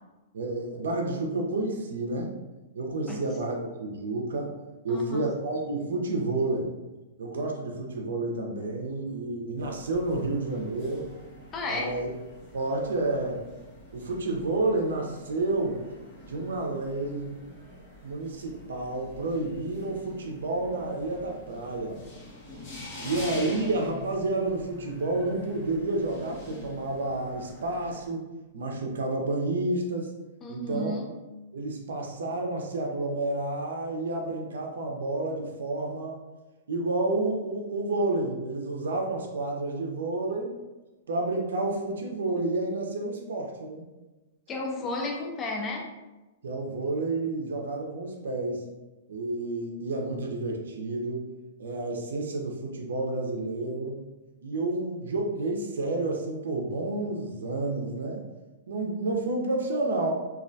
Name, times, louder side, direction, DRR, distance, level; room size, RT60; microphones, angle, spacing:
voice 1, 0.3-2.3 2.7-6.7 7.2-11.1 11.7-12.1 12.5-13.4 13.9-15.8 16.2-17.3 18.0-22.0 23.0-28.2 28.5-30.1 30.5-31.0 31.5-36.2 36.7-40.6 41.1-43.9 46.4-48.6 49.1-51.3 51.6-54.0 54.4-58.2 58.7-60.1, right 2 dB, 85° right, 1 dB, 0.5 m, -30 dB
voice 2, 3.1-3.5 4.9-5.3 11.5-11.9 30.4-31.1 44.5-45.9, left 2 dB, 20° left, 0 dB, 0.4 m, -33 dB
sound 1, 9.6-28.1, left 2 dB, 40° left, 0.8 m, -46 dB
2.3 x 2.1 x 2.6 m, 1.1 s
hypercardioid pair, 145°, 0 cm